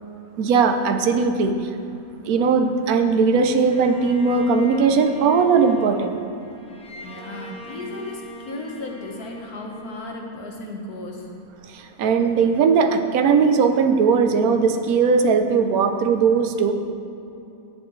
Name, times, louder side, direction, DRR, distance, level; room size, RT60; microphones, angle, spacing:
voice 1, 0.4-1.6 2.3-6.1 11.7-16.7, right 5 dB, 75° right, 7 dB, 1.2 m, -19 dB
Bowed string instrument, 3.7-11.0, left 1 dB, 5° left, 0.5 m, -40 dB
voice 2, 7.0-11.3, left 2 dB, 80° left, 0 dB, 1.8 m, -35 dB
14.5 x 7.5 x 3.2 m, 2.8 s
omnidirectional pair, 1.6 m